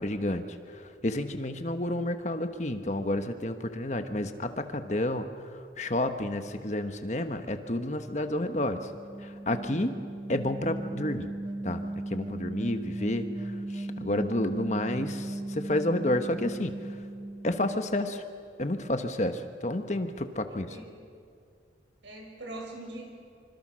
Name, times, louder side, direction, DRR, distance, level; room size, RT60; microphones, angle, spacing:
voice 1, 0.0-5.3 5.8-8.9 9.2-10.0 10.3-11.3 11.6-16.8 17.4-18.2 18.6-20.8, left 1 dB, 40° left, 8 dB, 1.3 m, -30 dB
sound 1, 8.4-18.5, right 1 dB, 25° right, 0.9 m, -37 dB
voice 2, 20.3-20.9 22.0-23.1, right 2 dB, 90° right, 1 dB, 6.3 m, -42 dB
26.0 x 26.0 x 6.4 m, 2.2 s
head